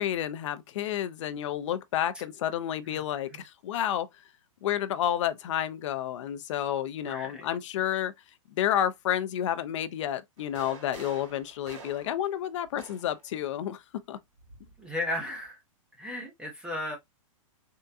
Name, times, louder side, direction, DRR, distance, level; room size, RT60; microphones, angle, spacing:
voice 1, 0.0-4.1 4.6-8.1 8.5-13.8 14.1-14.2, left 11 dB, 60° left, 0.5 m, -30 dB
voice 2, 7.0-7.5 14.8-15.6 16.0-17.0, left 1 dB, 5° right, 0.6 m, -35 dB
sound 1, 10.4-13.3 14.4-15.5, right 5 dB, 55° right, 1.8 m, -49 dB
3.6 x 2.1 x 2.6 m
hypercardioid pair, 145°, 18 cm